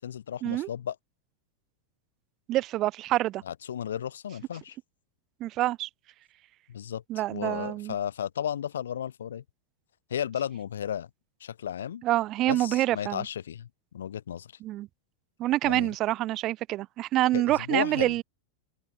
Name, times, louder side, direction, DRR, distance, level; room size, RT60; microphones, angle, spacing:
voice 1, 0.0-1.0 3.4-4.8 6.7-7.0 7.3-9.4 10.1-11.1 11.4-12.0 12.5-13.7 13.9-14.5 15.6-15.9 17.3-18.2, left 9 dB, 65° left, 7.0 m, -34 dB
voice 2, 2.5-3.4 5.4-5.9 7.1-7.9 12.0-13.2 14.6-14.9 15.4-18.2, right 15 dB, 35° right, 4.2 m, -26 dB
open air
figure-of-eight pair, 90°, 0 cm